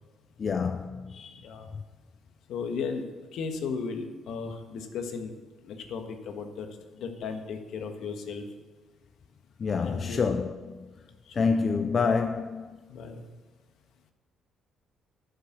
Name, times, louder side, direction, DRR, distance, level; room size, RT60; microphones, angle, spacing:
voice 1, 0.4-1.5 9.6-10.9 11.3-12.8, left 5 dB, 40° left, 0.5 m, -28 dB
voice 2, 1.4-1.7 2.5-3.1 3.3-5.3 5.6-6.7 6.9-8.4 9.8-10.3 11.3-11.5 12.9-13.2, left 5 dB, 75° left, 1.5 m, -35 dB
11.5 x 6.6 x 8.1 m
cardioid pair, 100°, 0 cm